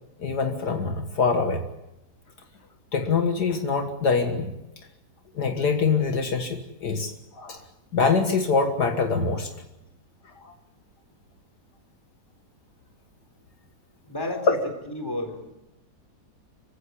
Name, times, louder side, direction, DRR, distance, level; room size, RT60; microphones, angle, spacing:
voice 1, 0.2-1.7 2.9-4.5 5.3-7.6 7.9-9.5 10.4-10.5 14.5-14.6, left 4 dB, 70° left, 5 dB, 2.2 m, -24 dB
voice 2, 14.1-15.4, left 1 dB, 10° left, 4 dB, 4.0 m, -32 dB
27.0 x 15.5 x 9.9 m, 0.93 s
omnidirectional pair, 1.8 m